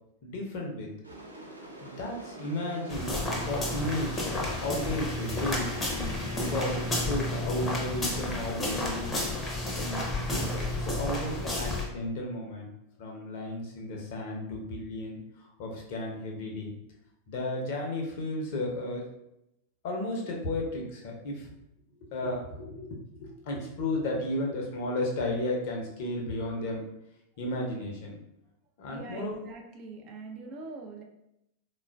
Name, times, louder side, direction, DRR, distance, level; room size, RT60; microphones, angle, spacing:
voice 1, 0.2-0.9 1.8-5.7 5.9-9.2 9.7-12.7 13.0-16.7 17.3-19.0 19.8-21.5 22.0-26.8 27.4-28.2 28.8-29.4, left 1 dB, 50° left, 0 dB, 0.7 m, -34 dB
sound 1, 1.0-7.1, right 1 dB, 85° right, 0.5 m, -46 dB
sound 2, 2.9-11.9, left 1 dB, 15° left, 0.7 m, -31 dB
voice 2, 28.9-31.0, right 3 dB, 35° right, 2 dB, 0.4 m, -43 dB
3.6 x 2.3 x 2.2 m, 0.82 s
figure-of-eight pair, 90°, 0 cm